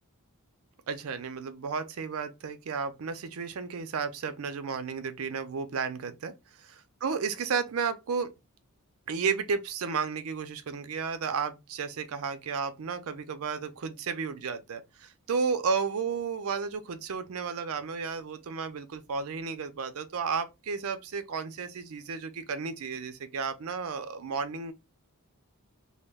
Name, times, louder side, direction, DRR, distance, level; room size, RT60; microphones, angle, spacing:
voice 1, 0.9-6.3 7.0-8.3 9.1-24.7, right 5 dB, 70° right, 0.4 m, -33 dB
2.2 x 2.1 x 3.3 m
head